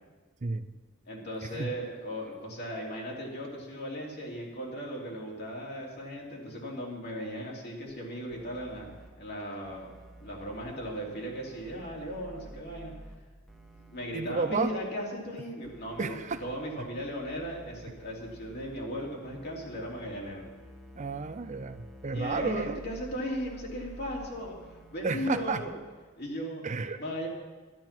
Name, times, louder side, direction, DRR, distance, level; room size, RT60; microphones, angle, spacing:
voice 1, 1.1-8.9 9.2-9.9 10.2-12.9 13.9-20.4 22.1-25.7 26.2-26.6 27.0-27.3, equal, 55° left, -2 dB, 3.1 m, -37 dB
sound 1, 7.9-8.0 8.3-9.1 9.6-13.2 13.5-14.7 15.6-25.7, right 1 dB, ahead, 1.5 m, -51 dB
voice 2, 14.1-14.7 16.0-16.4 21.0-22.8 25.0-25.6 26.6-27.0, right 4 dB, 35° right, 11 dB, 0.5 m, -32 dB
12.0 x 12.0 x 6.0 m, 1.3 s
head